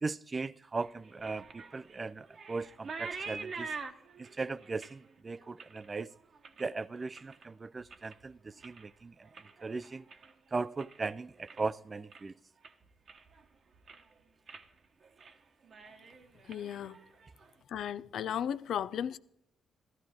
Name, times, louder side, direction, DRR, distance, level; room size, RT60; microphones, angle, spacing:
voice 1, 0.0-3.7 4.2-6.1 6.6-9.3 9.6-10.0 10.5-12.3, right 3 dB, 35° right, 0.4 m, -38 dB
sound 1, 0.8-7.5 7.8-8.3 8.6-11.0 11.3-11.8 12.1-12.2 12.6-13.4 13.7-14.1 14.5-14.7 15.0-15.4 15.6-17.5, right 4 dB, 50° right, 1.2 m, -46 dB
voice 2, 16.5-17.0 17.7-19.2, left 9 dB, 65° left, 0.5 m, -35 dB
15.0 x 14.0 x 3.6 m
hypercardioid pair, 40°, 0 cm